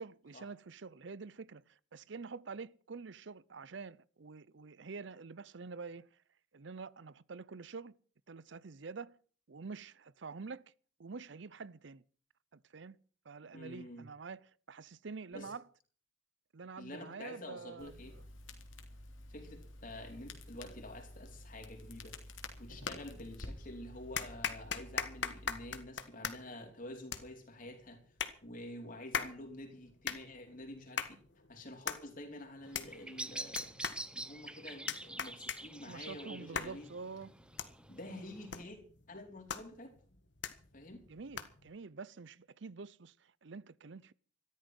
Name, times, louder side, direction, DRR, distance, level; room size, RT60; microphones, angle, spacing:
voice 1, 0.0-6.1 6.5-8.0 8.3-9.2 9.5-10.7 11.0-12.0 12.5-13.0 13.3-15.6 16.5-18.2 35.9-37.3 41.1-44.1, right 4 dB, 65° right, 0.6 m, -47 dB
voice 2, 13.5-14.1 15.3-15.5 16.8-18.2 19.3-22.2 22.6-28.0 28.4-31.2 31.5-33.7 34.1-36.9 37.9-38.8 39.1-39.9 40.7-41.0, left 1 dB, 45° left, 4.5 m, -48 dB
Crackle, 17.8-25.8, left 2 dB, 85° left, 3.5 m, -49 dB
sound 1, 23.5-23.6 24.2-41.7, left 6 dB, 65° left, 1.7 m, -42 dB
Bird vocalization bird call bird song, 32.6-38.6, right 2 dB, 5° right, 0.8 m, -47 dB
14.5 x 13.5 x 6.2 m
head